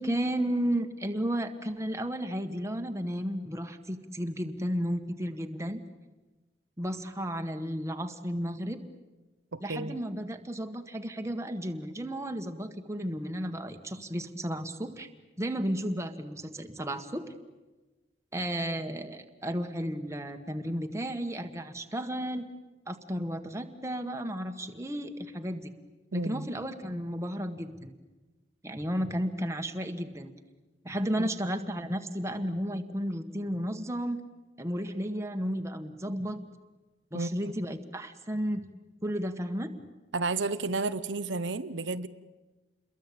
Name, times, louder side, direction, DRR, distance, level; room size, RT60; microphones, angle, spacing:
voice 1, 0.0-5.8 6.8-8.8 9.6-15.1 15.4-17.3 18.3-22.5 22.9-25.7 26.1-27.9 28.6-30.3 30.8-34.2 34.6-36.4 37.1-38.7 39.0-39.7, equal, 15° right, 6 dB, 1.7 m, -33 dB
voice 2, 9.5-10.0 26.1-26.5 31.2-31.3 37.1-37.5 40.1-42.1, right 3 dB, 90° right, 11 dB, 1.0 m, -32 dB
29.0 x 22.0 x 8.8 m, 1.2 s
head